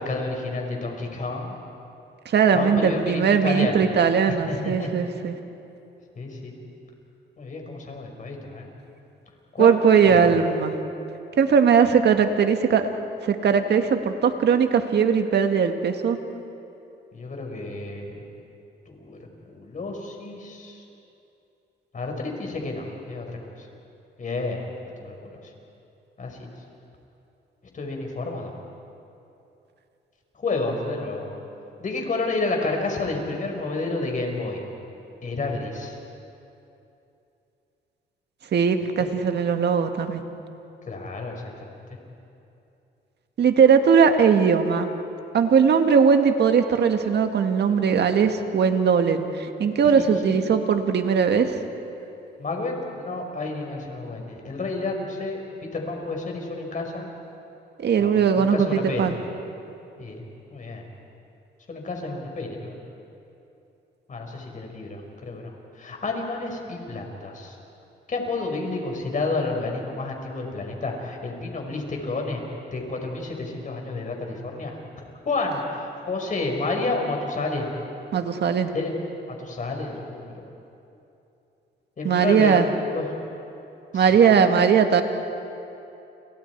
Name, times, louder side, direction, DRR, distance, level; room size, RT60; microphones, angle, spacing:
voice 1, 0.0-1.5 2.5-3.9 4.3-4.9 6.1-6.6 7.4-8.7 9.5-10.3 17.1-18.2 18.9-19.2 19.5-20.8 21.9-23.7 24.2-24.6 25.0-25.3 26.2-26.6 27.7-28.5 30.3-31.3 31.8-34.6 35.2-36.0 39.0-39.1 40.9-41.8 49.8-50.4 52.4-57.1 58.0-59.1 60.0-60.2 60.5-60.8 61.7-62.7 64.1-67.5 68.1-72.4 72.7-74.8 75.2-77.7 78.7-78.9 79.3-80.3 82.0-83.1 83.9-84.2, left 3 dB, 40° left, 2 dB, 5.2 m, -30 dB
voice 2, 2.3-5.3 9.6-10.7 11.4-12.9 13.2-16.2 38.5-40.2 43.4-44.9 45.3-51.6 57.8-59.2 78.1-78.7 82.0-82.7 83.9-85.0, right 6 dB, 60° right, 6 dB, 1.9 m, -19 dB
29.5 x 29.5 x 4.7 m, 2.8 s
cardioid pair, 90°, 20 cm